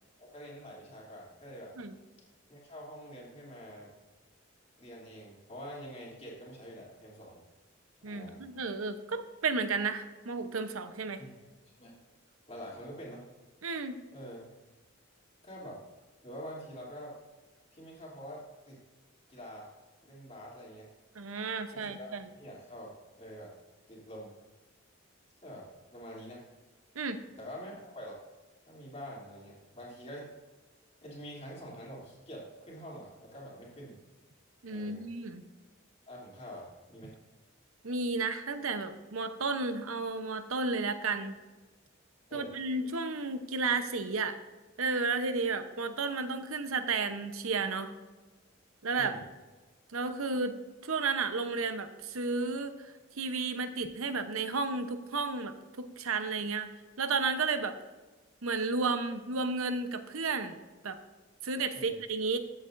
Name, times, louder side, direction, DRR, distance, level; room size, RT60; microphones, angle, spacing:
voice 1, 0.2-1.7 2.5-3.9 4.8-7.4 8.0-8.4 11.2-11.4 11.8-11.9 12.5-13.2 14.1-14.5 15.4-15.8 16.2-17.1 17.7-18.8 19.3-19.7 20.0-20.9 21.7-23.5 23.9-24.3 25.4-26.4 27.4-28.2 28.6-30.3 31.0-34.0 34.7-35.0 36.1-37.1 42.3-42.5 48.9-49.2 61.7-61.9, equal, 30° left, -4 dB, 2.9 m, -46 dB
voice 2, 8.0-11.2 13.6-14.0 21.1-22.3 26.9-27.2 34.6-35.5 37.8-41.4 42.3-44.4 44.8-47.9 48.8-49.2 49.9-50.6 50.8-56.7 57.0-57.7 58.4-60.5 60.8-61.0 61.4-62.4, right 4 dB, 80° right, 9 dB, 0.8 m, -32 dB
14.0 x 8.3 x 2.6 m, 1.3 s
head